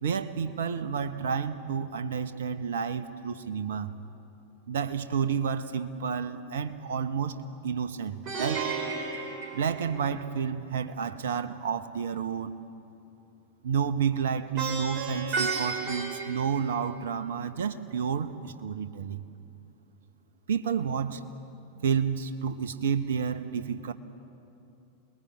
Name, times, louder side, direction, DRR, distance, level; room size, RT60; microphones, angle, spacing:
voice 1, 0.0-3.9 4.7-7.4 7.6-8.6 9.5-12.6 13.6-19.2 20.5-21.2 21.8-23.9, right 7 dB, 65° right, 11 dB, 1.3 m, -30 dB
Plucked string instrument, 8.3-10.4 14.6-17.2, right 5 dB, 40° right, 3.2 m, -33 dB
28.5 x 21.0 x 8.6 m, 2.8 s
figure-of-eight pair, 90°, 0 cm